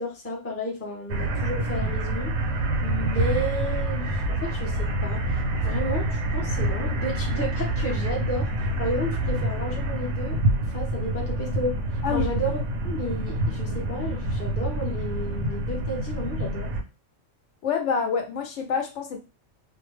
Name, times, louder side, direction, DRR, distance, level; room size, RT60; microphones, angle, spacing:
voice 1, 0.0-2.3 2.8-8.5 8.8-10.4 10.7-11.8 12.1-16.7, equal, 15° left, 0.6 m, -32 dB
sound 1, 1.1-16.8, right 1 dB, 75° right, 0.9 m, -27 dB
voice 2, 17.6-19.2, left 6 dB, 75° left, 0.9 m, -27 dB
2.6 x 2.1 x 3.1 m
omnidirectional pair, 1.3 m